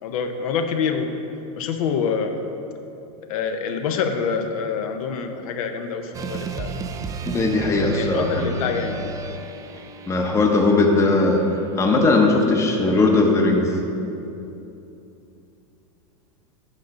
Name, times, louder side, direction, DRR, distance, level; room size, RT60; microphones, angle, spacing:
voice 1, 0.0-1.1 1.5-2.4 3.3-6.7 7.6-9.1, left 6 dB, 70° left, 6 dB, 0.7 m, -26 dB
sound 1, 6.1-14.5, right 3 dB, 20° right, 0.3 m, -35 dB
voice 2, 7.2-8.6 10.0-11.4 11.7-13.7, left 3 dB, 15° left, 2 dB, 0.8 m, -19 dB
8.4 x 3.8 x 6.4 m, 2.8 s
supercardioid pair, 135°, 19 cm